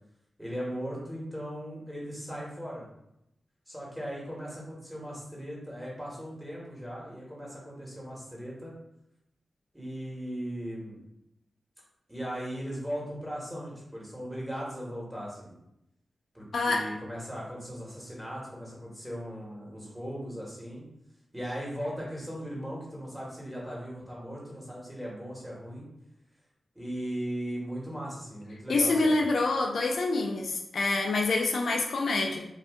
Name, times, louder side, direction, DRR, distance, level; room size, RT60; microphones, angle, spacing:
voice 1, 0.4-2.8 3.7-8.7 9.7-11.0 12.1-15.5 16.3-20.8 21.3-25.8 26.7-29.2, equal, 5° right, -5 dB, 1.3 m, -38 dB
voice 2, 16.5-16.8 28.7-32.5, left 3 dB, 75° left, 0 dB, 0.4 m, -26 dB
2.6 x 2.3 x 3.5 m, 0.82 s
cardioid pair, 75°, 0 cm